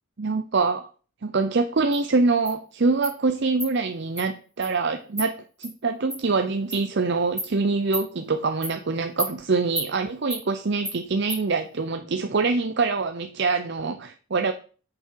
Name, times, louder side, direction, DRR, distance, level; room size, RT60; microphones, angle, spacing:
voice 1, 0.2-0.9 1.2-5.3 5.6-14.5, right 4 dB, 50° right, 8 dB, 0.6 m, -24 dB
Insect, 1.9-2.0 2.5-2.6 3.0-3.1 3.6-3.7 4.2-4.3 4.6-4.7 5.2-5.3 5.6-5.7 6.1-6.2 6.7-6.8 7.4-7.5 7.9-8.1 8.6-8.8 9.2-9.3 9.8-9.9 10.3-10.4 10.8-11.0 11.3-11.4, equal, 5° right, 5.4 m, -31 dB
8.5 x 7.4 x 4.6 m, 0.39 s
head